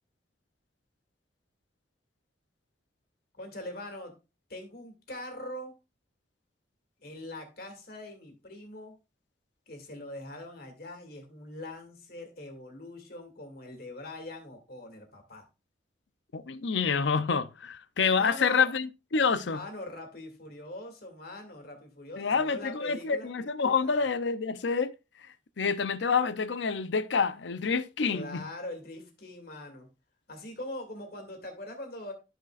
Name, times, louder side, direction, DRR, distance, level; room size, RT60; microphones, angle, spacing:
voice 1, 3.3-4.1 4.5-5.7 7.0-8.9 9.7-15.4 18.1-18.7 19.3-23.3 23.6-24.1 28.1-29.9 30.3-32.1, left 1 dB, 55° left, 2.4 m, -42 dB
voice 2, 16.3-19.6 22.2-24.9 25.6-28.4, left 5 dB, 75° left, 0.6 m, -27 dB
14.0 x 5.1 x 2.4 m
head